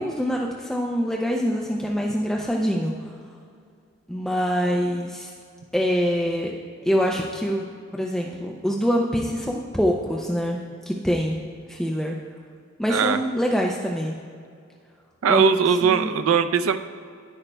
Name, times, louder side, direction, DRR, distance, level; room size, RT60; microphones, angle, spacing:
voice 1, 0.0-3.1 4.1-5.3 5.7-6.5 6.8-7.7 7.9-10.6 10.9-11.4 11.7-12.2 12.8-14.2 15.3-15.4 15.8-16.1, equal, ahead, -1 dB, 0.4 m, -25 dB
voice 2, 15.2-16.8, right 6 dB, 90° right, 10 dB, 0.4 m, -20 dB
10.0 x 9.8 x 2.2 m, 2.2 s
head